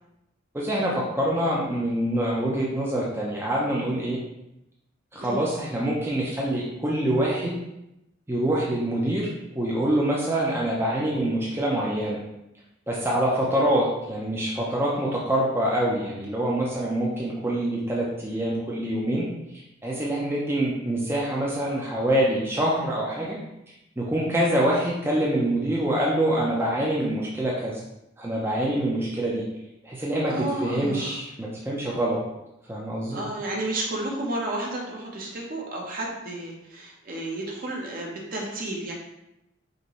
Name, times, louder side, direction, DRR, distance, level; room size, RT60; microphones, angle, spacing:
voice 1, 0.5-4.2 5.1-7.5 8.3-12.2 12.9-19.2 19.8-23.4 24.0-27.8 28.2-29.4 29.8-30.3 30.6-32.2 32.7-33.2, right 1 dB, 10° right, -5 dB, 0.5 m, -25 dB
voice 2, 30.3-31.2 33.1-38.9, right 1 dB, 45° right, -1 dB, 0.8 m, -32 dB
5.2 x 2.6 x 3.1 m, 0.87 s
head